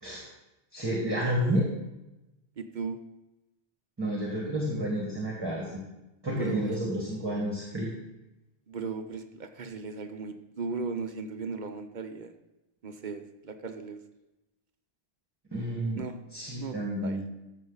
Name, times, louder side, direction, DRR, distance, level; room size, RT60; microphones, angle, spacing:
voice 1, 0.7-1.7 4.0-5.8 6.2-7.9 15.5-16.0 16.3-17.2, right 1 dB, 20° right, -2 dB, 1.7 m, -30 dB
voice 2, 2.6-3.0 6.3-6.8 8.7-12.3 12.8-14.0 16.0-16.2 16.6-17.3, right 4 dB, 45° right, 7 dB, 0.8 m, -37 dB
14.0 x 6.5 x 4.0 m, 0.98 s
omnidirectional pair, 1.2 m